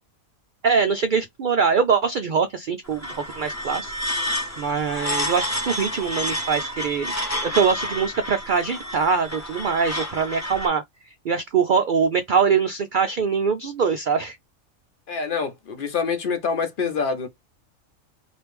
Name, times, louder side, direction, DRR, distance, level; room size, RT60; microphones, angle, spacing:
voice 1, 0.6-3.9 4.6-7.1 7.4-14.4, right 6 dB, 80° right, 0.4 m, -23 dB
sound 1, 2.9-10.7, equal, 15° left, 0.8 m, -29 dB
voice 2, 15.1-17.3, left 5 dB, 45° left, 0.9 m, -26 dB
3.0 x 2.6 x 3.4 m
omnidirectional pair, 1.4 m